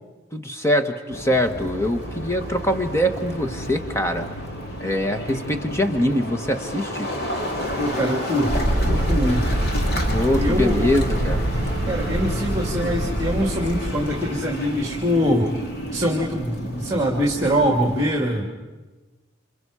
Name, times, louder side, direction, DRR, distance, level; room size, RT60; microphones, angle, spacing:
voice 1, 0.3-4.3 4.8-7.1 10.1-11.5, equal, 15° left, 6 dB, 1.2 m, -23 dB
sound 1, 1.1-18.1, equal, 55° left, 2.7 m, -31 dB
voice 2, 7.8-9.6 10.4-10.9 11.9-15.5 15.9-18.5, equal, 15° right, -1 dB, 2.0 m, -23 dB
sound 2, 8.5-14.2, right 1 dB, 35° left, 7.8 m, -24 dB
28.5 x 27.0 x 4.9 m, 1.3 s
head